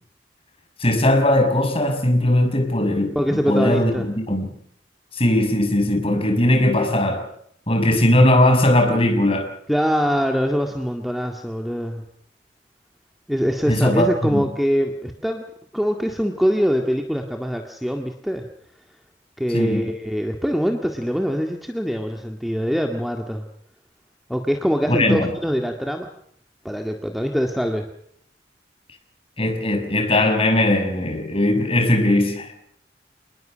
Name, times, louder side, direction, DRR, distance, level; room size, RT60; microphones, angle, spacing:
voice 1, 0.8-4.5 5.1-7.2 7.7-9.5 13.7-14.4 19.5-19.9 24.9-25.3 29.4-32.5, left 1 dB, 30° left, 6.2 m, -19 dB
voice 2, 3.2-4.1 9.7-12.0 13.3-15.4 15.7-18.4 19.4-23.5 24.3-26.1 26.6-27.9, equal, ahead, 1.9 m, -23 dB
28.0 x 20.5 x 6.4 m
head